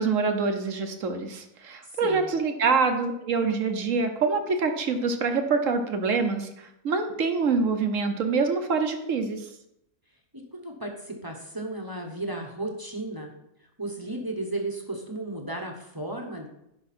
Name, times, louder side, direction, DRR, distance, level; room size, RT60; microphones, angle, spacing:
voice 1, 0.0-9.5, right 4 dB, 65° right, 6 dB, 1.2 m, -25 dB
voice 2, 1.8-2.3 10.3-13.3 13.8-16.5, right 2 dB, 15° right, 1 dB, 1.0 m, -34 dB
11.5 x 4.9 x 4.3 m, 0.82 s
omnidirectional pair, 1.5 m